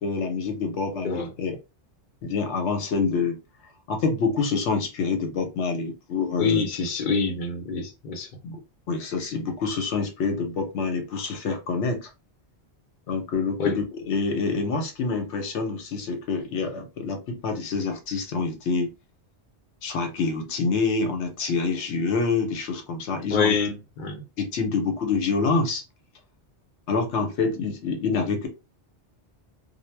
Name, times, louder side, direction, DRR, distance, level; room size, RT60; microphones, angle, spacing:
voice 1, 0.0-1.6 2.2-3.4 3.9-6.7 8.4-8.6 8.9-12.1 13.1-18.9 19.8-23.6 24.4-25.8 26.9-28.5, left 4 dB, 90° left, 1.0 m, -26 dB
voice 2, 6.4-8.3 13.6-13.8 23.3-24.2, left 4 dB, 50° left, 0.7 m, -26 dB
2.2 x 2.0 x 3.2 m
omnidirectional pair, 1.1 m